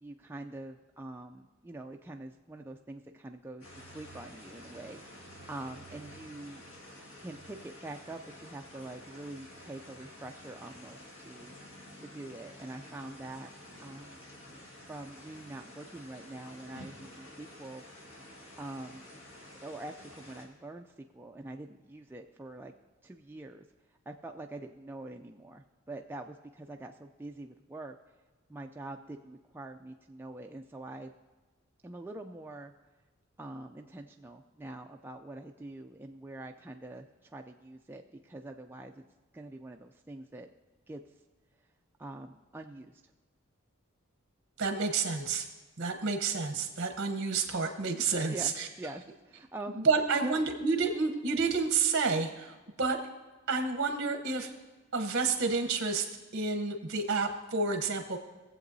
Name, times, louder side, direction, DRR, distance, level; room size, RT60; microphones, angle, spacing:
voice 1, 0.0-6.6 7.2-11.5 12.0-13.5 13.8-14.2 14.9-17.8 18.6-19.0 19.6-22.7 23.0-23.6 24.1-28.0 28.5-31.1 31.8-32.7 33.4-39.0 39.3-40.5 40.9-41.0 42.0-43.0 48.3-49.8 50.2-50.4, right 2 dB, 10° right, 3 dB, 0.3 m, -45 dB
sound 1, 3.6-20.5, left 1 dB, 70° left, 1.8 m, -50 dB
voice 2, 44.6-45.5 45.8-48.7 49.8-53.0 53.5-54.5 54.9-56.1 56.3-58.2, right 4 dB, 55° right, 5 dB, 0.9 m, -29 dB
18.5 x 7.6 x 2.7 m, 1.3 s
head